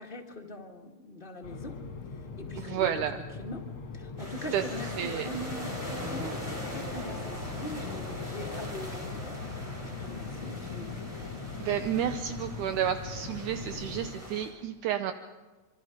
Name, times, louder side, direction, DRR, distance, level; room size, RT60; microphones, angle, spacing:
voice 1, 0.0-1.8 2.4-11.0, left 1 dB, 20° left, 1 dB, 1.4 m, -42 dB
sound 1, 1.4-14.1, left 4 dB, 45° left, 2.4 m, -40 dB
voice 2, 2.6-3.2 4.5-4.6 5.0-5.3 6.2-6.4 11.6-15.1, right 10 dB, 75° right, 8 dB, 2.2 m, -31 dB
sound 2, 4.2-14.5, left 1 dB, 5° right, 5.7 m, -41 dB
26.0 x 24.5 x 5.2 m, 1.3 s
omnidirectional pair, 3.7 m